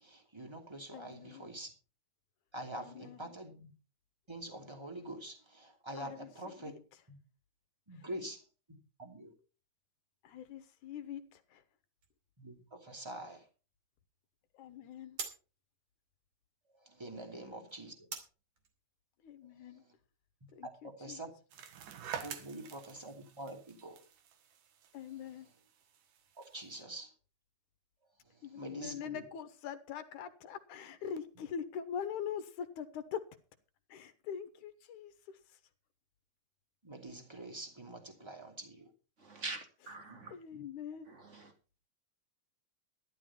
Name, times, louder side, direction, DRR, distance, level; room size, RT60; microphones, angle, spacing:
voice 1, 0.0-1.7 2.5-3.7 4.3-6.7 7.1-7.2 7.9-8.4 9.0-9.3 12.4-13.4 16.9-17.9 20.8-21.3 22.2-24.0 26.4-27.1 28.5-29.2 36.8-38.9 40.1-40.2 40.5-40.6, right 1 dB, 10° right, 2.3 m, -45 dB
voice 2, 0.9-1.5 2.8-3.3 6.0-6.8 10.2-11.2 11.5-11.6 14.5-15.2 19.2-19.8 20.5-21.2 24.9-25.5 28.4-33.2 33.9-35.1 40.3-41.1, left 8 dB, 70° left, 2.5 m, -43 dB
sound 1, 12.0-20.6, right 5 dB, 45° right, 3.6 m, -52 dB
sound 2, 21.5-26.8, right 8 dB, 70° right, 2.9 m, -48 dB
voice 3, 39.2-40.4 41.0-41.5, right 3 dB, 25° right, 2.2 m, -44 dB
13.5 x 12.0 x 4.4 m
omnidirectional pair, 3.8 m